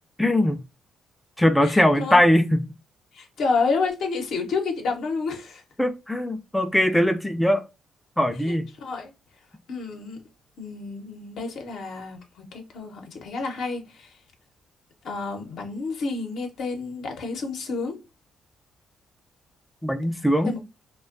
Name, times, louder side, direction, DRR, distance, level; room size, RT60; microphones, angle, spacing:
voice 1, 0.2-0.6 1.4-2.6 5.8-7.6 8.2-8.6 19.8-20.5, left 1 dB, 5° left, 0.3 m, -20 dB
voice 2, 1.6-2.2 3.1-5.6 8.8-9.1 9.7-10.2 10.6-14.1 15.0-18.0 20.4-20.6, left 4 dB, 70° left, 0.7 m, -29 dB
2.5 x 2.2 x 2.4 m
cardioid pair, 90°, 0 cm